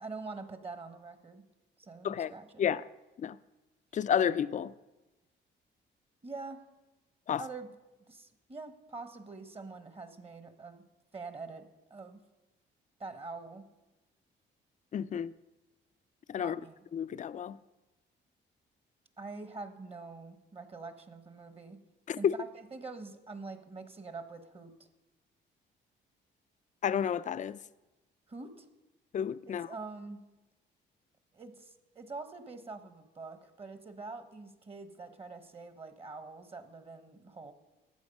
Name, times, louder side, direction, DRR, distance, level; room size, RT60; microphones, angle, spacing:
voice 1, 0.0-1.4 1.8-2.6 6.2-6.6 7.4-7.7 8.1-10.8 11.1-12.2 13.0-13.6 16.4-16.8 19.2-21.8 22.2-24.7 28.3-28.7 29.5-30.2 31.3-37.5, right 3 dB, 30° right, 1.1 m, -45 dB
voice 2, 3.9-4.7 7.3-7.4 14.9-15.3 16.3-16.6 16.9-17.6 22.1-22.3 26.8-27.6 29.1-29.7, left 8 dB, 40° left, 0.4 m, -30 dB
12.5 x 8.1 x 5.3 m
cardioid pair, 90°, 20 cm